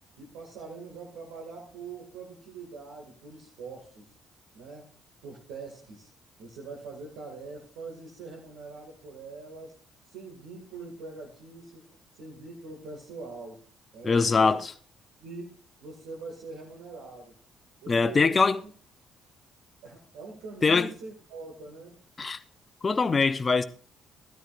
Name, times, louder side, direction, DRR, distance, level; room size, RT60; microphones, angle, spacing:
voice 1, 0.2-4.1 4.5-5.0 5.2-6.1 6.4-9.8 10.1-11.9 12.1-13.6 13.9-14.6 15.2-15.5 15.8-17.3 17.8-18.4 18.6-18.7 19.8-22.0, right 3 dB, 75° right, 2.2 m, -43 dB
voice 2, 14.0-14.7 17.9-18.6 20.6-20.9 22.2-22.4 22.8-23.6, left 4 dB, 35° left, 0.8 m, -22 dB
14.0 x 13.0 x 2.6 m
hypercardioid pair, 50°, 0 cm